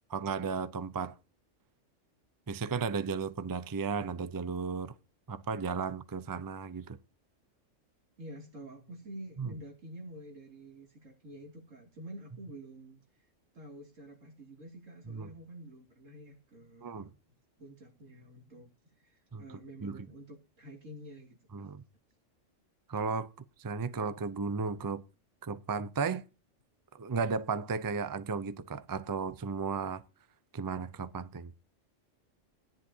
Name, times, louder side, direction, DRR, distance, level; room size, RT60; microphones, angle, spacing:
voice 1, 0.1-1.2 2.5-4.9 5.3-7.0 9.4-9.5 15.1-15.3 16.8-17.1 19.3-19.4 19.8-20.0 21.5-21.8 22.9-23.3 23.6-25.0 25.4-26.2 27.0-30.0 30.5-31.5, right 5 dB, 25° right, 0.4 m, -34 dB
voice 2, 8.2-13.0 13.5-17.1 17.6-18.7 19.0-21.7, right 1 dB, 85° right, 3.1 m, -48 dB
16.5 x 10.5 x 2.8 m
omnidirectional pair, 1.3 m